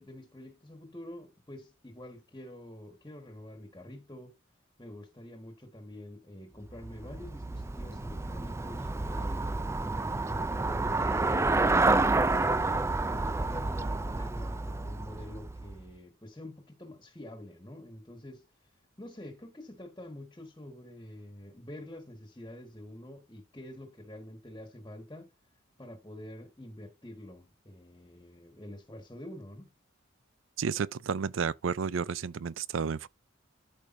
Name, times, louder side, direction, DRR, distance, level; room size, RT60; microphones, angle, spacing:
voice 1, 0.0-4.4 4.8-12.7 13.0-18.5 19.0-25.3 25.8-29.7, left 1 dB, 20° left, 1.5 m, -47 dB
Traffic noise roadway noise / Bicycle, 6.7-15.9, right 2 dB, 15° right, 0.3 m, -29 dB
voice 2, 30.6-33.1, right 6 dB, 75° right, 0.5 m, -31 dB
13.0 x 5.0 x 2.6 m
head